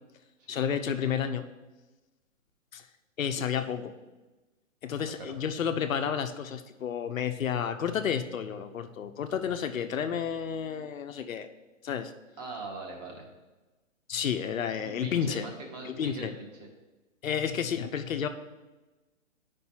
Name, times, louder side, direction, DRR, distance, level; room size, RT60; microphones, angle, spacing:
voice 1, 0.5-1.4 2.7-2.9 3.2-3.9 4.8-11.5 11.8-12.1 14.1-15.5 15.8-16.3 17.2-18.3, left 8 dB, 85° left, 8 dB, 0.7 m, -31 dB
voice 2, 5.0-5.3 12.4-13.3 14.8-16.7, right 3 dB, 30° right, 1 dB, 1.3 m, -41 dB
9.4 x 5.3 x 2.9 m, 1.1 s
hypercardioid pair, 145°, 39 cm